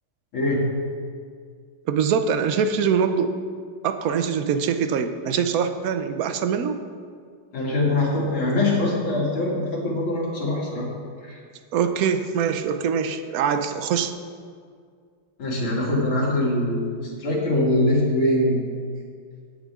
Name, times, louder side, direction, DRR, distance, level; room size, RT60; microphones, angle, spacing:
voice 1, 0.3-0.7 7.5-10.9 11.2-11.4 15.4-18.7, left 1 dB, 75° left, -5 dB, 3.4 m, -23 dB
voice 2, 1.9-3.3 3.8-6.8 11.7-14.1, right 7 dB, 65° right, 8 dB, 0.9 m, -23 dB
17.0 x 9.1 x 3.7 m, 2.1 s
omnidirectional pair, 2.2 m